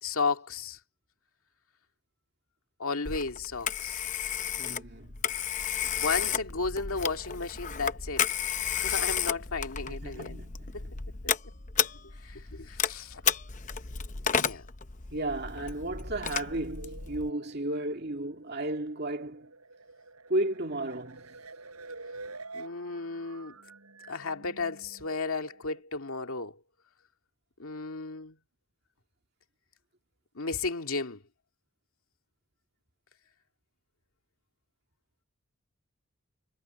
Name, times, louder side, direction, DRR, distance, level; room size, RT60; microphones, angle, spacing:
voice 1, 0.0-0.8 2.8-4.0 5.8-8.2 8.7-10.4 10.7-10.8 11.2-11.3 12.2-13.2 14.3-14.7 22.5-23.6 24.1-26.6 27.6-28.4 30.3-31.2, left 4 dB, 75° left, 2.3 m, -34 dB
Telephone, 3.1-17.3, left 8 dB, 35° left, 0.8 m, -32 dB
voice 2, 4.6-5.1 9.9-10.9 15.1-19.5 20.3-21.4, right 1 dB, 45° right, 2.2 m, -34 dB
sound 1, 16.5-25.8, right 3 dB, 85° right, 6.7 m, -48 dB
head